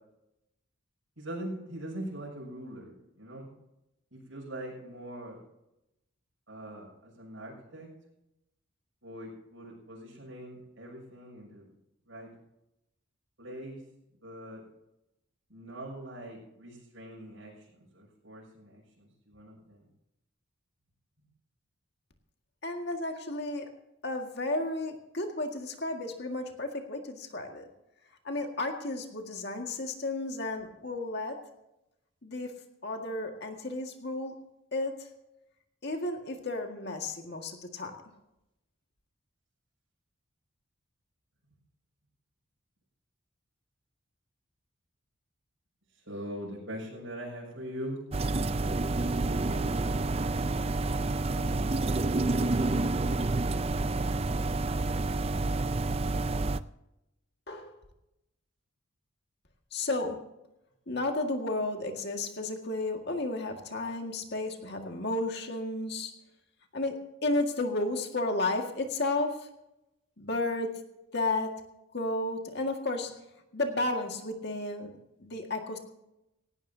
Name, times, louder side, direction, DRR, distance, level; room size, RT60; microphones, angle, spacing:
voice 1, 1.2-3.5 4.1-5.4 6.5-7.9 9.0-11.6 12.1-12.3 13.4-13.8 14.2-14.6 15.5-19.8 45.9-48.0 49.2-49.9 51.3-51.9, right 1 dB, 70° right, -3 dB, 6.5 m, -42 dB
voice 2, 22.6-23.7 24.0-27.7 28.2-31.4 32.2-32.5 32.8-34.3 34.7-35.1 35.8-37.9 57.5-57.7 59.7-60.2 60.9-66.1 66.7-69.5 70.2-70.7 71.1-71.5 71.9-73.1 73.5-74.9 75.2-75.8, left 2 dB, 50° left, 3 dB, 1.9 m, -32 dB
sound 1, 48.1-56.6, right 2 dB, 30° right, 0.4 m, -29 dB
18.5 x 17.0 x 2.8 m, 0.88 s
head